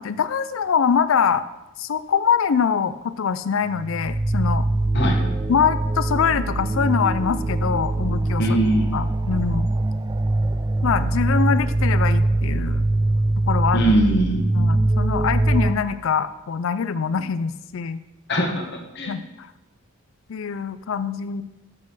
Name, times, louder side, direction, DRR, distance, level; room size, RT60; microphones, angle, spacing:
voice 1, 0.0-1.4 1.8-4.6 5.5-8.4 8.9-9.7 10.8-12.8 13.5-13.9 14.5-18.0 19.1-19.5 20.3-21.4, left 6 dB, 70° left, 14 dB, 0.4 m, -23 dB
sound 1, 3.7-15.7, right 2 dB, 20° right, 0.4 m, -22 dB
voice 2, 4.9-5.3 8.4-8.9 13.7-14.4 18.3-19.1, right 1 dB, 55° left, 2 dB, 1.5 m, -21 dB
7.4 x 6.3 x 6.3 m, 0.97 s
head